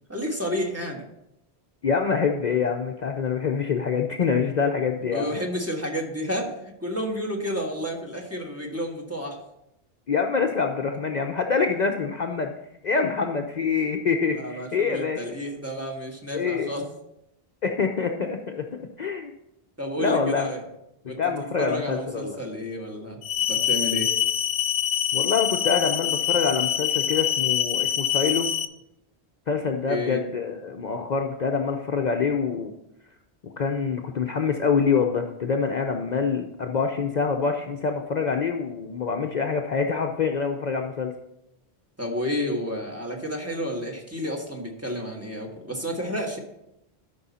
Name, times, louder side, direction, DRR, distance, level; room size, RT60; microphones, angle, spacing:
voice 1, 0.1-1.0 5.1-9.4 14.3-16.8 19.8-20.6 21.1-21.2 21.6-23.2 23.5-24.1 29.9-30.2 42.0-46.4, equal, 15° right, 0 dB, 1.4 m, -31 dB
voice 2, 1.8-5.3 10.1-12.5 12.8-15.2 16.3-16.7 17.6-18.7 19.0-19.3 20.0-20.5 21.2-22.4 25.1-28.5 29.5-32.7 33.4-41.1, left 5 dB, 50° left, 3 dB, 0.7 m, -25 dB
sound 1, 23.2-28.6, left 10 dB, 85° left, 0.8 m, -25 dB
12.5 x 5.5 x 4.2 m, 0.84 s
omnidirectional pair, 1.1 m